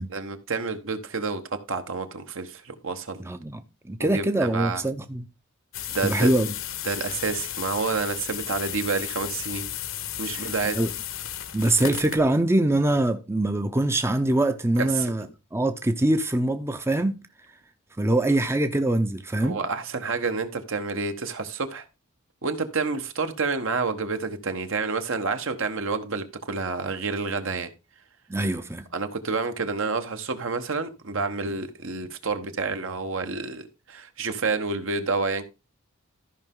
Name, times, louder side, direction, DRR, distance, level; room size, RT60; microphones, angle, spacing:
voice 1, 0.1-3.3 4.0-4.8 5.9-6.3 6.8-9.7 10.2-10.8 14.8-15.1 19.4-21.9 22.4-27.7 28.9-35.4, right 4 dB, 65° right, 1.3 m, -29 dB
voice 2, 3.2-3.6 3.9-5.2 6.0-6.5 10.3-10.9 11.5-15.3 15.5-17.2 18.0-19.6 28.3-28.9, right 1 dB, 10° right, 0.6 m, -23 dB
sound 1, 5.7-12.2, left 10 dB, 65° left, 1.1 m, -34 dB
13.5 x 5.6 x 3.8 m
head